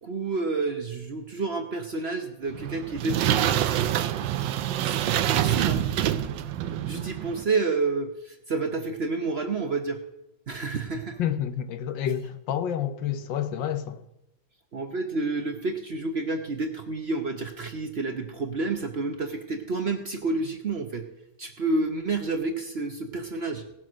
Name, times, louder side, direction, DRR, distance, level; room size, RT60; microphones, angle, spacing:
voice 1, 0.0-3.4 4.8-5.8 6.8-10.0 10.5-11.2 14.7-21.0 21.4-23.6, right 3 dB, 45° right, 0.9 m, -29 dB
sound 1, 2.5-7.4, right 11 dB, 80° right, 1.3 m, -26 dB
voice 2, 11.2-14.0, left 9 dB, 85° left, 1.5 m, -29 dB
18.0 x 6.2 x 6.2 m
omnidirectional pair, 2.0 m